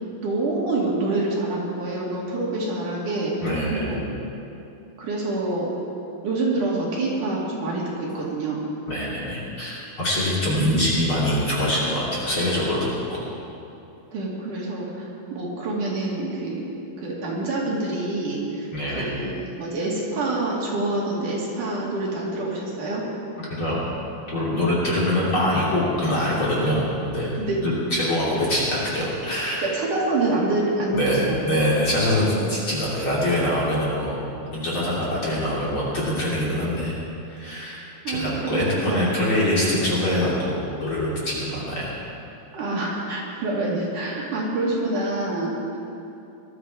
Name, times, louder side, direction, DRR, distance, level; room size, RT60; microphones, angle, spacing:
voice 1, 0.1-3.3 3.7-4.0 5.0-5.7 6.2-8.6 14.1-16.6 17.0-19.3 19.6-23.0 27.4-27.6 29.6-31.4 38.0-39.1 42.5-45.8, right 2 dB, 60° right, -4 dB, 3.5 m, -26 dB
voice 2, 3.4-4.0 8.9-13.3 18.7-19.1 23.5-23.8 24.3-27.3 27.6-29.7 30.9-34.2 34.5-36.9 37.3-37.8 38.1-41.9, left 1 dB, 35° left, -7 dB, 3.4 m, -24 dB
20.0 x 12.5 x 4.8 m, 2.8 s
omnidirectional pair, 4.4 m